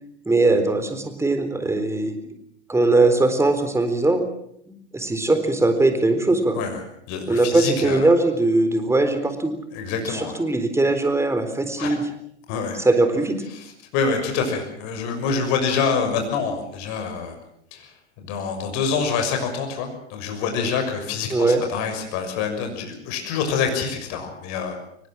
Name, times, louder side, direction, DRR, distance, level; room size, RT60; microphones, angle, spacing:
voice 1, 0.3-2.2 2.7-4.2 4.7-6.6 7.3-9.5 10.1-12.0 12.8-13.4 21.3-21.6, right 2 dB, 10° right, 8 dB, 4.1 m, -20 dB
voice 2, 7.1-8.1 9.7-10.4 11.8-12.0 12.5-12.8 13.5-17.3 17.7-17.9 18.2-24.8, left 5 dB, 55° left, 5 dB, 6.4 m, -26 dB
23.0 x 21.0 x 7.5 m, 0.70 s
hypercardioid pair, 105°, 34 cm